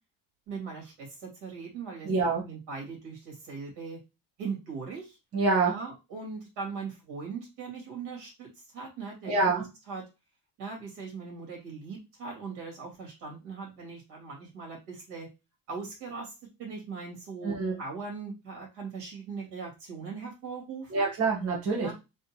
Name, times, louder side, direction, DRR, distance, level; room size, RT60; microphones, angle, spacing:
voice 1, 0.5-2.1 2.4-4.0 4.4-5.2 5.6-10.0 10.6-15.3 15.7-21.1 21.8-21.9, right 5 dB, 85° right, -1 dB, 2.4 m, -40 dB
voice 2, 2.0-2.4 5.3-5.7 9.3-9.6 17.4-17.7 20.9-21.9, right 3 dB, 40° right, -2 dB, 1.1 m, -26 dB
3.9 x 3.2 x 2.9 m, 0.26 s
cardioid pair, 170°, 39 cm